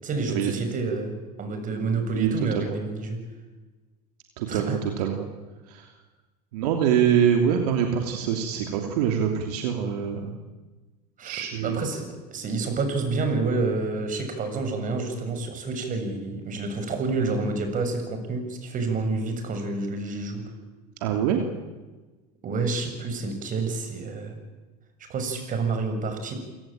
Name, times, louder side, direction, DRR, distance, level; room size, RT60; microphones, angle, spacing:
voice 1, 0.0-1.1 1.4-3.2 4.5-4.8 11.2-20.4 22.4-24.4 25.1-26.3, right 3 dB, 40° right, 6 dB, 7.0 m, -28 dB
voice 2, 2.1-2.8 4.4-5.3 5.7-5.9 6.5-10.3 11.2-11.8 21.0-21.4, right 8 dB, 75° right, 4 dB, 3.0 m, -24 dB
28.5 x 17.5 x 8.9 m, 1.2 s
hypercardioid pair, 85°, 20 cm